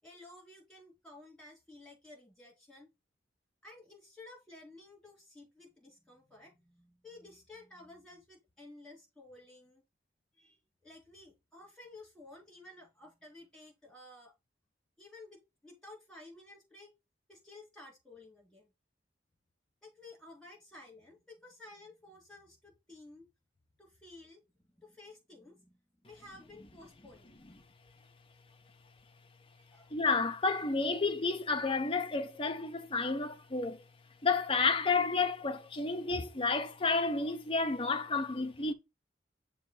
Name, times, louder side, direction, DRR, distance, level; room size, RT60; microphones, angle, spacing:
voice 1, 0.0-2.9 3.6-9.8 10.3-14.3 15.0-16.9 17.3-18.7 19.8-23.3 23.8-27.4 29.5-30.2 30.8-31.0, left 2 dB, 5° left, 4.0 m, -54 dB
voice 2, 29.9-33.8 34.2-38.7, left 4 dB, 30° left, 0.9 m, -31 dB
6.7 x 3.2 x 4.7 m
head